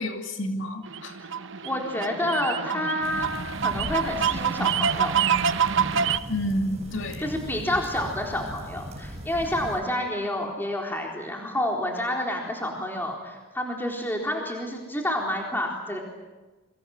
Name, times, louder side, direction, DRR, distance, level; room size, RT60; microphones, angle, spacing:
voice 1, 0.0-1.2 6.3-7.3, left 1 dB, 60° left, 4 dB, 2.6 m, -29 dB
sound 1, 0.9-6.2, right 7 dB, 55° right, 0.9 m, -26 dB
voice 2, 1.2-3.3 3.6-5.1 7.2-16.0, left 1 dB, 10° left, 0 dB, 4.0 m, -29 dB
sound 2, 3.0-9.8, equal, 30° right, 4.6 m, -39 dB
28.5 x 24.5 x 7.9 m, 1.2 s
head